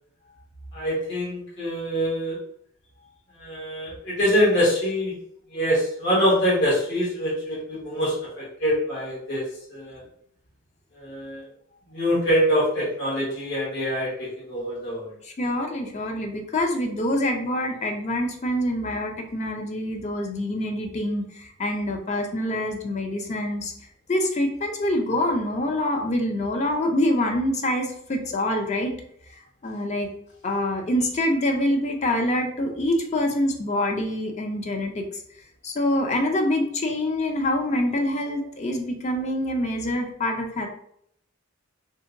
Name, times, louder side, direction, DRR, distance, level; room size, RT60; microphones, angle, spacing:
voice 1, 0.7-2.4 3.3-5.1 5.5-10.0 10.9-11.5 11.9-15.1, equal, 65° left, -6 dB, 1.2 m, -24 dB
voice 2, 15.4-23.7 24.1-28.9 29.6-30.1 30.4-35.1 35.6-40.7, left 1 dB, 35° left, 2 dB, 0.5 m, -25 dB
2.9 x 2.7 x 2.5 m, 0.69 s
head